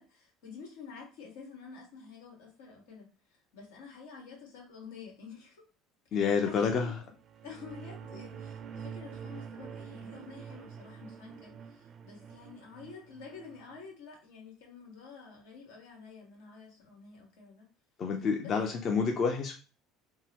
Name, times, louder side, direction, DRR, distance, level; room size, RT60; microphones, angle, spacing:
voice 1, 0.0-5.6 6.4-7.0 7.4-17.7 18.4-18.8, left 5 dB, 90° left, -1 dB, 1.5 m, -49 dB
voice 2, 6.1-7.0 18.0-19.5, left 5 dB, 45° left, 3 dB, 0.5 m, -28 dB
sound 1, 7.1-13.8, right 7 dB, 45° right, 0.4 m, -46 dB
3.7 x 2.1 x 2.9 m, 0.35 s
supercardioid pair, 105°, 0 cm